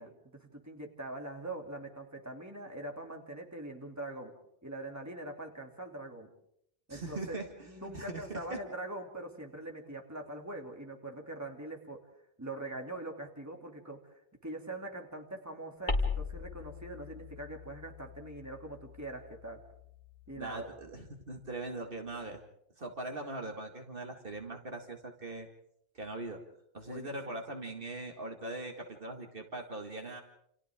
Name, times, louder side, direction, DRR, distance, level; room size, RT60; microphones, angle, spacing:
voice 1, 0.0-4.3 4.6-6.3 6.9-12.0 12.4-14.0 14.4-19.6 20.3-20.7 26.9-27.4, right 2 dB, 15° right, 1 dB, 2.8 m, -43 dB
voice 2, 6.9-7.7 7.9-8.6 20.4-22.4 22.8-25.5 25.9-26.4 26.7-30.2, right 2 dB, 60° right, 3 dB, 2.2 m, -41 dB
sound 1, 15.9-20.7, left 3 dB, 50° left, 2.6 m, -39 dB
29.0 x 28.0 x 3.7 m, 0.73 s
omnidirectional pair, 1.1 m